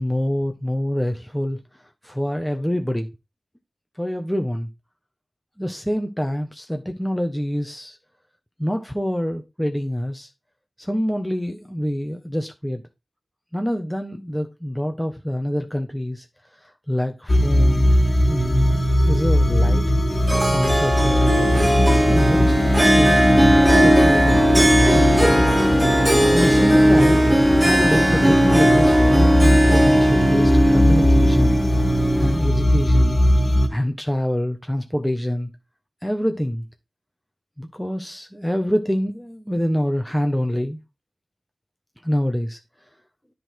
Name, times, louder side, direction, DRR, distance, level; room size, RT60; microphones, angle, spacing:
voice 1, 0.0-1.6 2.0-3.1 4.0-4.7 5.6-8.0 8.6-10.3 10.8-12.8 13.5-16.2 16.9-17.9 18.3-19.9 20.5-21.6 22.1-23.2 23.8-24.4 24.9-25.5 26.3-27.3 27.6-31.6 32.2-33.2 33.7-35.5 36.0-36.6 37.6-40.8 42.0-42.6, equal, 5° left, 1.1 m, -25 dB
sound 1, 17.3-33.7, equal, 40° left, 2.0 m, -19 dB
Harp, 20.3-32.5, equal, 20° right, 2.9 m, -18 dB
10.0 x 4.0 x 4.6 m
wide cardioid pair, 55°, 0 cm